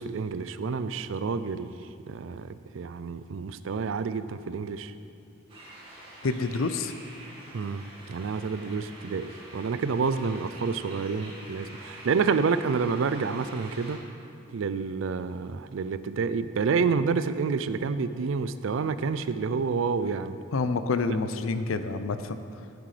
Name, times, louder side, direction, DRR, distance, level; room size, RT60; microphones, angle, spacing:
voice 1, 0.0-1.7 2.1-2.5 2.7-4.9 7.5-7.8 8.1-14.0 14.5-20.4, right 5 dB, 70° right, 13 dB, 0.4 m, -28 dB
sound 1, 5.5-14.0, right 1 dB, 25° right, 2.1 m, -46 dB
voice 2, 6.2-7.0 20.5-22.4, left 3 dB, 80° left, 10 dB, 0.5 m, -28 dB
12.0 x 9.5 x 3.3 m, 2.7 s
head